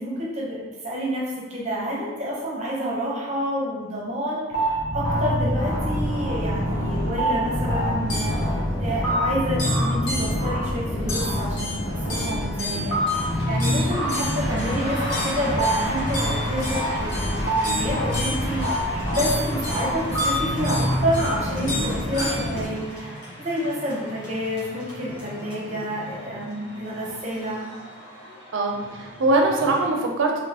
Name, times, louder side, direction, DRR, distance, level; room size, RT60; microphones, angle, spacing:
voice 1, 0.0-27.6, equal, 35° right, -5 dB, 0.7 m, -29 dB
sound 1, 4.5-22.7, equal, 85° left, 1.0 m, -25 dB
sound 2, 11.2-29.9, equal, 60° left, 1.2 m, -37 dB
voice 2, 28.5-30.4, right 2 dB, 70° right, 1 dB, 0.4 m, -22 dB
3.9 x 2.8 x 2.8 m, 1.3 s
head